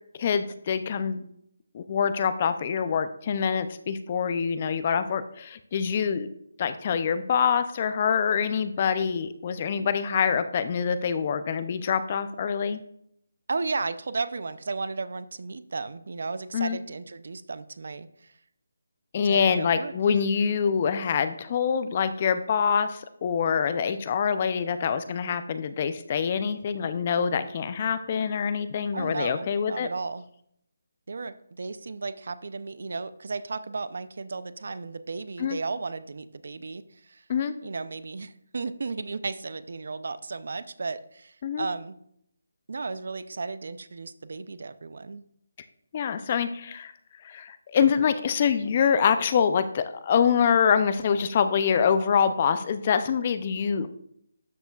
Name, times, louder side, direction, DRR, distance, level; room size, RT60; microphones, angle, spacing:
voice 1, 0.2-1.2 1.7-6.3 6.6-12.8 16.5-16.8 19.1-29.9 35.4-35.6 37.3-37.5 41.4-41.7 45.9-46.9 47.2-53.9, left 7 dB, 30° left, 11 dB, 0.5 m, -25 dB
voice 2, 13.5-18.4 19.2-20.3 28.9-30.2 31.1-37.3 37.6-42.0 42.7-45.2, right 4 dB, 60° right, 14 dB, 0.5 m, -34 dB
12.5 x 6.9 x 2.4 m, 0.71 s
hypercardioid pair, 170°, 0 cm